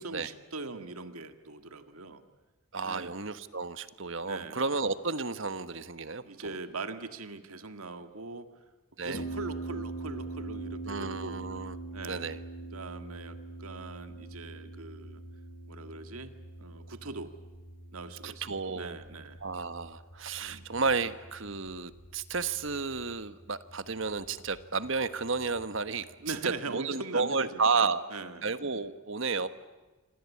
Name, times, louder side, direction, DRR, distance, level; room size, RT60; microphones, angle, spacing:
voice 1, 0.0-2.2 2.8-3.2 4.2-4.6 6.2-8.5 9.0-11.4 11.9-12.3 12.7-15.2 15.7-16.3 16.6-17.3 17.9-18.5 18.7-19.4 20.4-20.7 21.4-21.6 26.2-28.4 29.4-29.5, right 3 dB, 85° right, 9 dB, 2.0 m, -41 dB
voice 2, 2.7-6.6 9.0-9.3 10.9-11.8 12.1-12.4 18.2-19.0 19.4-28.0 28.4-29.5, right 4 dB, 60° right, 12 dB, 1.3 m, -32 dB
Harp, 9.1-26.6, right 2 dB, 50° left, 5.0 m, -44 dB
27.0 x 26.0 x 8.5 m, 1.2 s
head